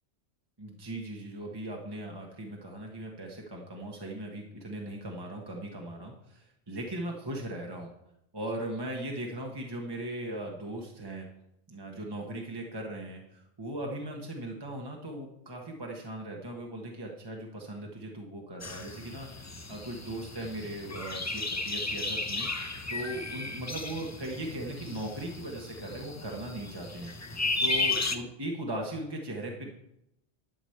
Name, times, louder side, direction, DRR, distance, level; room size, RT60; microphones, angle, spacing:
voice 1, 0.6-7.9 8.3-11.3 11.7-27.1 27.6-29.7, right 1 dB, 20° right, 0 dB, 1.2 m, -38 dB
sound 1, 18.6-28.2, left 3 dB, 20° left, 0.6 m, -34 dB
11.5 x 5.0 x 7.8 m, 0.84 s
omnidirectional pair, 1.1 m